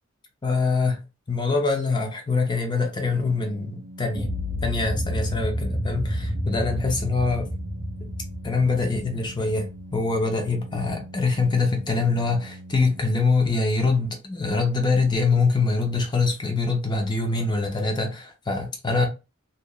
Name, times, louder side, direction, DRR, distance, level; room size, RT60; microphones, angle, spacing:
voice 1, 0.4-1.0 1.3-4.3 4.6-7.5 8.0-8.1 8.4-19.1, left 3 dB, 25° left, 0.5 m, -24 dB
Organ, 2.9-13.7, right 1 dB, 50° right, 0.4 m, -43 dB
sound 1, 4.1-10.2, equal, 15° right, 0.9 m, -29 dB
2.8 x 2.2 x 2.2 m
head